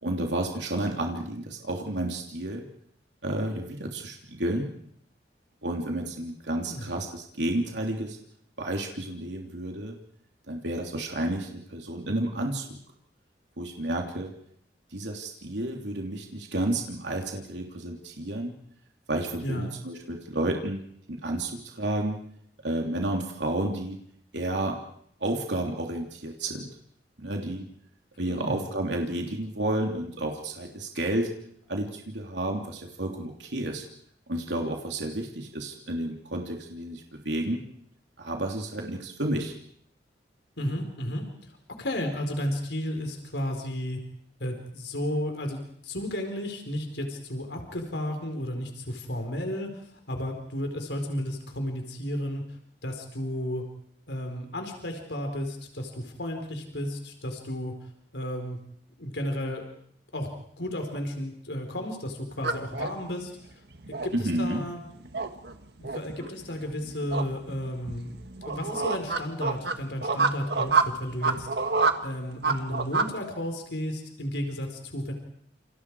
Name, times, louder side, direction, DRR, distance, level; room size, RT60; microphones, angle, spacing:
voice 1, 0.0-2.6 3.2-4.7 5.6-8.2 8.6-10.0 10.5-12.8 13.6-14.3 14.9-18.5 19.1-20.8 21.1-22.2 22.6-24.0 24.3-24.8 25.2-26.7 27.2-27.7 28.2-31.3 31.7-33.8 34.3-37.6 38.2-39.5 64.1-64.6, right 1 dB, 85° right, 1 dB, 3.2 m, -31 dB
voice 2, 6.5-6.9 19.4-19.7 28.3-28.6 40.6-41.3 41.8-44.0 44.4-49.7 50.1-52.4 52.8-53.6 54.1-57.7 58.1-58.6 59.0-59.6 60.1-60.3 60.6-63.3 64.0-64.8 65.8-68.1 68.5-71.7 72.0-75.1, equal, 85° left, 4 dB, 4.5 m, -33 dB
sound 1, 62.3-73.1, right 4 dB, 65° right, 1.6 m, -29 dB
29.0 x 28.5 x 4.9 m, 0.68 s
head